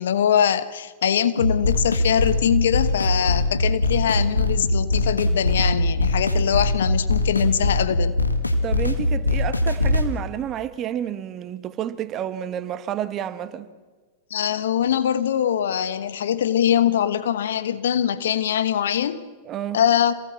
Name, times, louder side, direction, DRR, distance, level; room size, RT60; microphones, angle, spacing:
voice 1, 0.0-8.1 14.3-19.2 19.7-20.1, left 9 dB, 65° left, 1.2 m, -22 dB
sound 1, 1.4-10.1, left 2 dB, 90° left, 1.9 m, -22 dB
voice 2, 8.6-13.7 19.4-19.8, right 10 dB, 35° right, 1.4 m, -30 dB
27.0 x 18.5 x 7.2 m
figure-of-eight pair, 95°, 0 cm